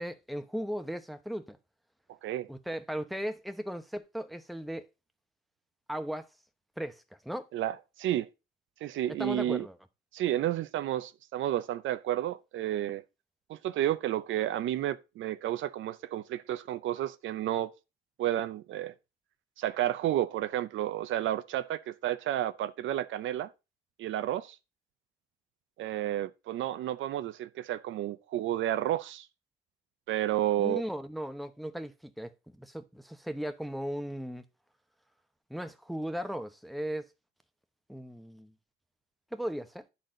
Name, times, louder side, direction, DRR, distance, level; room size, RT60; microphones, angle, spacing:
voice 1, 0.0-1.6 2.5-4.9 5.9-6.3 6.8-7.5 9.2-9.8 30.6-34.4 35.5-37.1 37.9-38.5 39.3-39.8, equal, ahead, 0.9 m, -37 dB
voice 2, 7.5-8.3 8.8-9.7 10.1-13.0 13.5-17.7 18.2-18.9 19.6-23.5 24.0-24.6 25.8-29.3 30.1-30.8, right 12 dB, 75° right, 0.6 m, -31 dB
10.0 x 4.2 x 3.8 m
cardioid pair, 90°, 20 cm